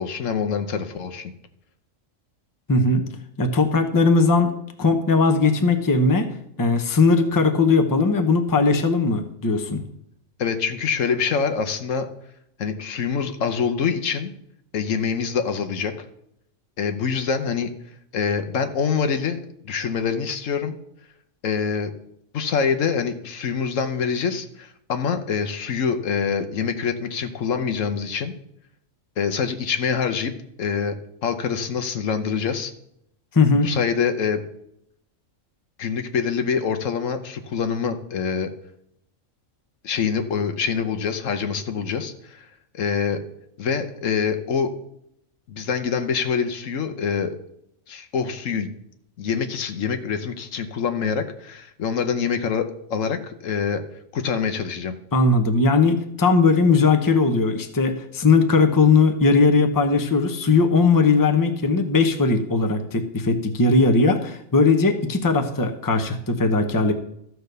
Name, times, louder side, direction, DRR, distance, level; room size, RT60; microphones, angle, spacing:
voice 1, 0.0-1.3 10.4-12.1 12.6-14.3 14.7-15.9 16.8-17.7 18.1-19.4 19.6-20.7 21.4-21.9 22.3-28.3 29.2-30.3 30.6-32.7 33.5-34.4 35.8-38.5 39.8-42.5 42.7-43.2 43.6-44.7 45.5-47.3 47.9-48.7 49.2-53.8 54.1-54.9, left 6 dB, 75° left, 7 dB, 1.2 m, -25 dB
voice 2, 2.7-3.0 3.4-4.5 4.8-6.3 6.6-9.8 33.3-33.7 55.1-66.9, left 3 dB, 20° left, 6 dB, 0.8 m, -19 dB
13.5 x 4.6 x 6.7 m, 0.75 s
omnidirectional pair, 1.4 m